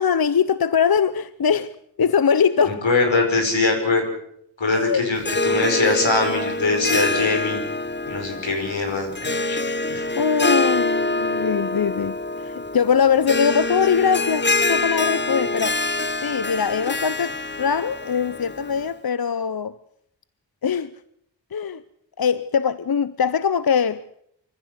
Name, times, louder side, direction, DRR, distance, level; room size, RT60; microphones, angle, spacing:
voice 1, 0.0-1.7 2.0-2.8 4.7-5.1 10.2-15.8 16.2-19.8 20.6-20.9 21.5-21.8 22.2-24.0, left 7 dB, 55° left, 0.8 m, -22 dB
voice 2, 2.7-4.0 4.6-7.6 8.1-9.6 9.9-10.1, left 3 dB, 85° left, 5.4 m, -22 dB
Harp, 5.2-18.9, left 2 dB, 25° left, 0.8 m, -25 dB
24.0 x 15.0 x 8.1 m
cardioid pair, 40°, 45 cm